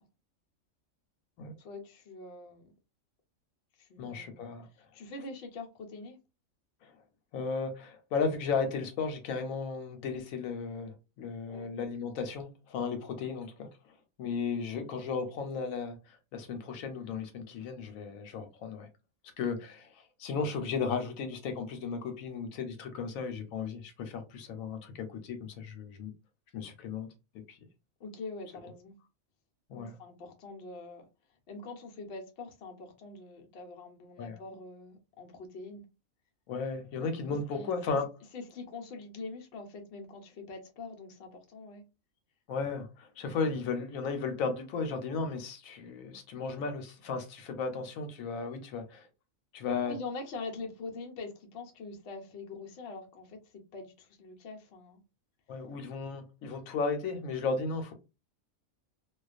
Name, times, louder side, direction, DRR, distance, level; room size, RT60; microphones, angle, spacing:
voice 1, 1.6-2.7 3.8-4.5 4.9-6.2 11.5-11.7 28.0-28.9 29.8-31.0 31.5-35.8 37.5-38.0 38.3-41.8 49.9-55.0, left 3 dB, 60° left, 0.8 m, -44 dB
voice 2, 4.0-4.7 6.8-6.9 7.3-18.9 19.4-26.1 26.5-27.1 27.5-27.6 29.7-30.0 34.2-34.4 36.5-38.1 42.5-49.1 49.5-49.9 55.5-57.9, left 5 dB, 85° left, 1.0 m, -35 dB
2.4 x 2.2 x 2.3 m
omnidirectional pair, 1.4 m